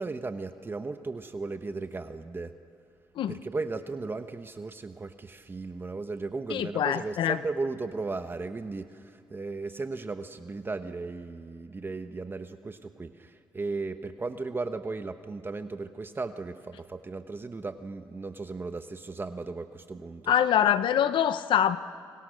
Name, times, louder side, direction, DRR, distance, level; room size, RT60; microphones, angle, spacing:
voice 1, 0.0-2.5 3.3-20.3, right 3 dB, 25° right, 8 dB, 1.1 m, -36 dB
voice 2, 6.5-7.4 20.3-21.8, left 10 dB, 75° left, 13 dB, 0.9 m, -24 dB
29.5 x 24.0 x 6.5 m, 2.3 s
cardioid pair, 100°, 8 cm